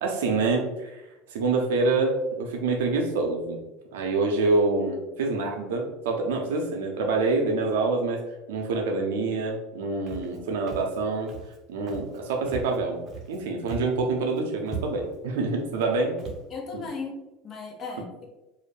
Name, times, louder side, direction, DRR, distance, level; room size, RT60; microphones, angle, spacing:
voice 1, 0.0-3.6 3.9-8.2 8.5-11.3 11.7-13.0 13.3-16.2 16.7-16.8, right 3 dB, 80° right, 2 dB, 0.6 m, -26 dB
Walk footsteps, 10.1-10.4 10.7-11.0 11.3-11.6 11.9-12.2 12.5-13.4 13.6-14.0 14.3-14.4 14.6-15.2 15.7-15.9 16.2-16.4, right 5 dB, 40° right, 0.7 m, -38 dB
voice 2, 16.5-18.3, left 4 dB, 35° left, 0 dB, 0.7 m, -37 dB
2.4 x 2.1 x 3.2 m, 0.97 s
supercardioid pair, 100°, 0 cm